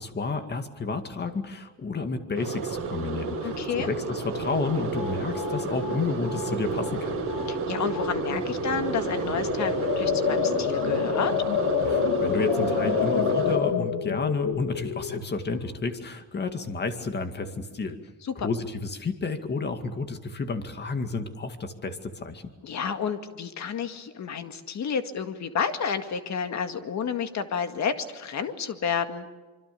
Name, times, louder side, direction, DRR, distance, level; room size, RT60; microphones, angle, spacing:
voice 1, 0.0-7.2 11.9-18.0 18.4-22.5, left 4 dB, 25° left, 8 dB, 2.2 m, -31 dB
sound 1, 2.3-13.6, right 3 dB, 35° right, 7.1 m, -31 dB
voice 2, 3.4-3.9 7.5-11.3 18.2-18.5 22.6-29.3, left 6 dB, 45° left, 8 dB, 2.1 m, -30 dB
sound 2, 4.2-4.3 4.5-7.0 7.3-7.6 7.9-8.4 8.9-15.8, left 7 dB, 75° left, 2.0 m, -28 dB
26.0 x 24.5 x 7.0 m, 1.3 s
cardioid pair, 145°, 38 cm